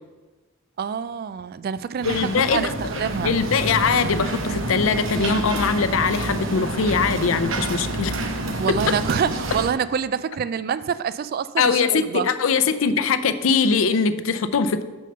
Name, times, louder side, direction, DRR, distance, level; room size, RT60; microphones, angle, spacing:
voice 1, 0.8-3.4 8.6-12.3, right 7 dB, 50° right, 15 dB, 0.3 m, -26 dB
voice 2, 2.0-2.7 3.2-8.1 8.9-9.0 11.6-14.8, left 5 dB, 85° left, 12 dB, 0.5 m, -21 dB
sound 1, 2.0-9.7, right 2 dB, 70° right, 0.8 m, -28 dB
6.6 x 5.4 x 6.6 m, 1.3 s
head